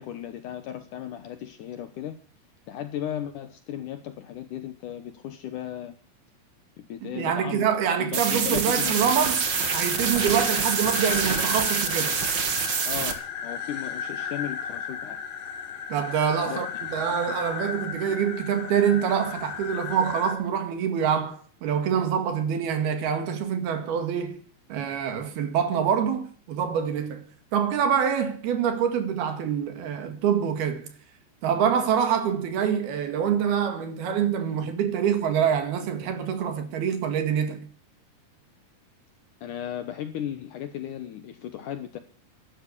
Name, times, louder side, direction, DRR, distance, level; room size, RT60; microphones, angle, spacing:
voice 1, 0.0-2.2 2.7-5.9 6.8-7.7 8.0-9.1 12.9-15.2 16.5-16.6 17.0-17.4 39.4-42.0, left 10 dB, 70° left, 2.0 m, -36 dB
voice 2, 7.0-9.4 9.7-12.1 15.9-24.4 24.7-27.2 27.5-30.9 31.4-37.7, right 8 dB, 75° right, 3.8 m, -25 dB
sound 1, 8.1-13.1, right 6 dB, 55° right, 1.2 m, -26 dB
sound 2, 8.8-20.4, left 7 dB, 90° left, 4.1 m, -35 dB
13.0 x 11.5 x 8.4 m
omnidirectional pair, 4.6 m